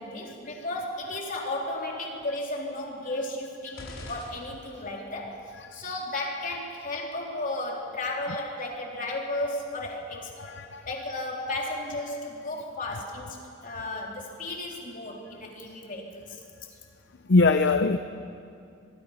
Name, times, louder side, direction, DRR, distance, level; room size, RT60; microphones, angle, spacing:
voice 1, 0.0-10.5 10.8-16.4, left 2 dB, 45° left, -1 dB, 3.6 m, -34 dB
sound 1, 3.7-5.1, left 1 dB, 85° left, 4.2 m, -43 dB
voice 2, 10.5-10.8 17.3-18.0, left 3 dB, 60° left, 9 dB, 0.7 m, -21 dB
24.5 x 23.0 x 5.7 m, 2.5 s
head